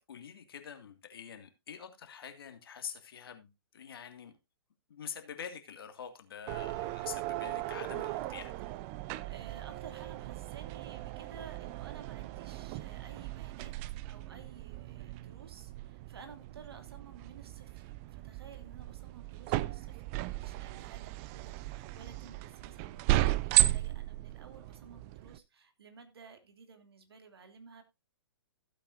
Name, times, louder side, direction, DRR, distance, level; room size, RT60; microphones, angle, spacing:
voice 1, 0.1-4.4 4.9-8.5, left 7 dB, 60° left, 2.2 m, -46 dB
sound 1, 6.5-25.4, right 17 dB, 30° right, 0.6 m, -35 dB
voice 2, 9.2-13.7 14.1-27.8, right 5 dB, 65° right, 2.6 m, -53 dB
15.5 x 8.4 x 2.6 m
figure-of-eight pair, 120°, 14 cm